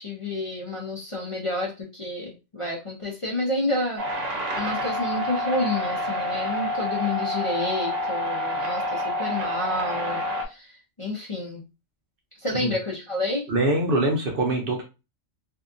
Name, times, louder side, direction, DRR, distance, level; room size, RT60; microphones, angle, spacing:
voice 1, 0.0-4.0 4.5-11.6 12.4-13.5, left 2 dB, 35° left, -3 dB, 0.6 m, -29 dB
sound 1, 4.0-10.4, left 1 dB, 90° right, 1.0 m, -28 dB
voice 2, 13.5-14.8, right 2 dB, 55° right, 1 dB, 0.8 m, -23 dB
2.7 x 2.3 x 2.5 m, 0.28 s
omnidirectional pair, 1.2 m